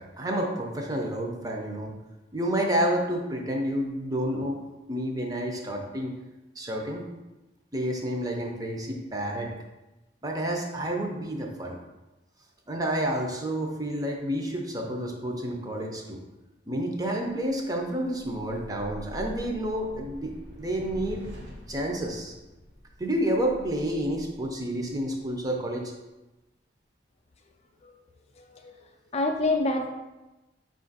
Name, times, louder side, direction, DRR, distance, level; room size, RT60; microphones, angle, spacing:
voice 1, 0.0-1.9 2.3-4.6 4.9-6.1 6.6-7.0 7.7-9.5 10.2-11.8 12.7-16.2 16.7-20.3 20.6-21.2 21.7-22.3 23.0-25.9, right 1 dB, 20° right, 1 dB, 0.5 m, -29 dB
sound 1, 17.3-25.7, equal, 70° right, 1.1 m, -45 dB
voice 2, 29.1-29.9, left 2 dB, 35° left, 3 dB, 0.4 m, -26 dB
5.0 x 2.5 x 3.9 m, 1.1 s
head